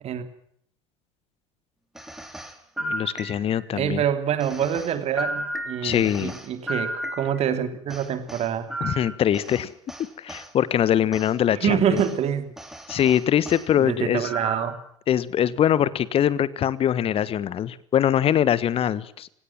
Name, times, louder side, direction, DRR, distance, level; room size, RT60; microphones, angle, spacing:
sound 1, 2.0-3.7 4.4-7.6 7.9-10.5 11.1-11.3 12.0-12.2 12.6-13.7 14.2-14.8, right 1 dB, ahead, 3.6 m, -34 dB
voice 1, 2.8-4.0 5.8-6.3 8.8-9.7 10.2-12.0 12.9-14.3 15.1-19.3, left 10 dB, 35° left, 19 dB, 1.4 m, -23 dB
voice 2, 3.7-8.7 11.6-12.5 13.8-14.7, right 9 dB, 40° right, 9 dB, 3.2 m, -26 dB
28.0 x 17.0 x 7.6 m, 0.67 s
figure-of-eight pair, 65°, 16 cm